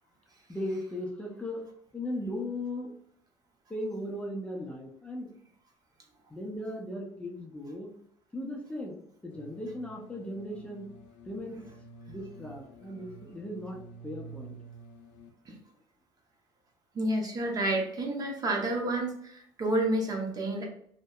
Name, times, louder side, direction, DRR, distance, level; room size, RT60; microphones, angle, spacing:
voice 1, 0.5-1.6 1.9-2.9 3.7-5.3 6.3-7.9 8.3-9.0 9.2-10.9 11.3-11.6 12.1-14.5, left 1 dB, 10° left, -1 dB, 0.5 m, -37 dB
sound 1, 9.3-15.3, right 3 dB, 80° left, 0.5 m, -49 dB
voice 2, 16.9-20.6, right 1 dB, 40° right, 1 dB, 0.7 m, -30 dB
2.6 x 2.1 x 2.2 m, 0.67 s
cardioid pair, 95°, 10 cm